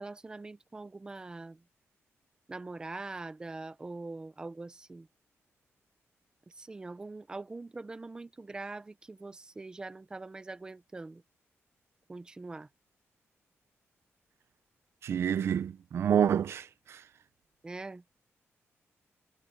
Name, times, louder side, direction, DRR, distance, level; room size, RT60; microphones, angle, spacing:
voice 1, 0.0-1.6 2.5-5.1 6.5-11.2 12.1-12.7 17.6-18.0, right 3 dB, 15° right, 0.7 m, -43 dB
voice 2, 15.0-17.0, right 8 dB, 60° right, 0.6 m, -28 dB
wide cardioid pair, 175°, 5 cm